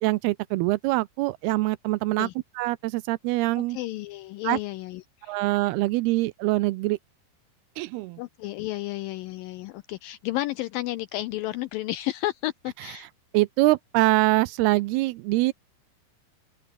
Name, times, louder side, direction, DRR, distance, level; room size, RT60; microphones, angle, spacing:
voice 1, 0.0-2.3 2.6-3.8 4.4-4.6 5.3-7.0 7.8-8.2 13.3-15.5, right 20 dB, 85° right, 2.7 m, -24 dB
voice 2, 3.5-5.4 8.2-13.1, left 16 dB, 80° left, 2.2 m, -32 dB
open air
omnidirectional pair, 4.5 m